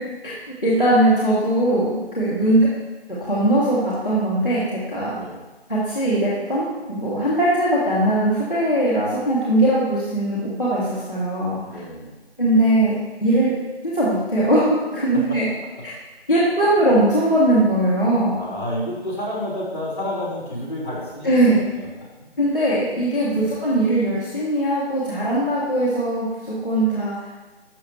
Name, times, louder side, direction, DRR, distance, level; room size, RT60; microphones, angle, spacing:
voice 1, 0.6-2.7 3.1-4.6 4.9-5.1 5.7-11.8 12.4-12.9 13.2-13.5 13.8-15.4 16.3-18.4 21.2-21.6 22.4-27.3, right 1 dB, 5° left, -16 dB, 0.9 m, -20 dB
voice 2, 11.6-12.2 15.1-15.5 18.3-22.3 23.3-23.6, left 1 dB, 25° left, -6 dB, 3.3 m, -31 dB
11.5 x 7.1 x 3.2 m, 1.2 s
figure-of-eight pair, 175°, 32 cm